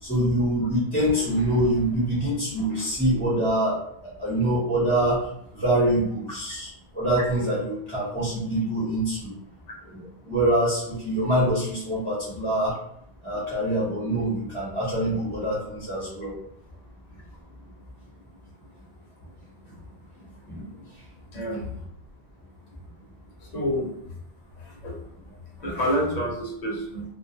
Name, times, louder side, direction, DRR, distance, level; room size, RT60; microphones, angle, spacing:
voice 1, 0.0-3.8 4.2-5.2 5.5-6.7 6.9-9.3 9.9-10.0 10.2-12.7 13.2-16.3 20.5-20.7 25.8-25.9, right 1 dB, 10° left, -8 dB, 0.7 m, -25 dB
voice 2, 21.3-21.6 23.5-24.0 24.8-24.9 25.6-27.0, equal, 45° left, -3 dB, 0.8 m, -27 dB
2.3 x 2.1 x 2.7 m, 0.72 s
omnidirectional pair, 1.1 m